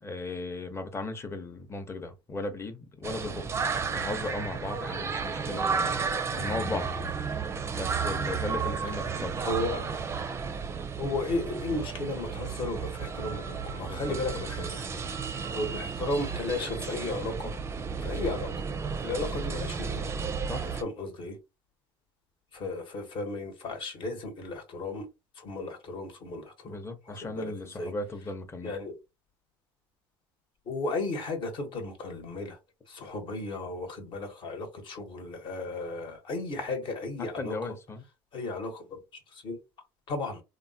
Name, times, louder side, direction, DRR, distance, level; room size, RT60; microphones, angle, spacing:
voice 1, 0.0-3.5 3.9-6.0 6.3-6.9 7.7-9.5 13.8-14.4 20.5-20.6 26.6-28.7 37.4-38.0, left 2 dB, 25° left, 0.8 m, -36 dB
sound 1, 3.0-20.8, right 5 dB, 25° right, 0.4 m, -33 dB
voice 2, 9.4-9.9 11.0-14.8 15.5-17.6 18.0-18.5 19.0-20.1 20.6-21.4 22.5-25.1 25.4-26.8 27.1-27.9 28.6-28.9 30.7-32.6 32.9-37.6 38.3-39.0 39.3-39.6 40.1-40.4, left 2 dB, 50° left, 1.1 m, -34 dB
3.0 x 2.1 x 2.7 m
supercardioid pair, 95°, 11 cm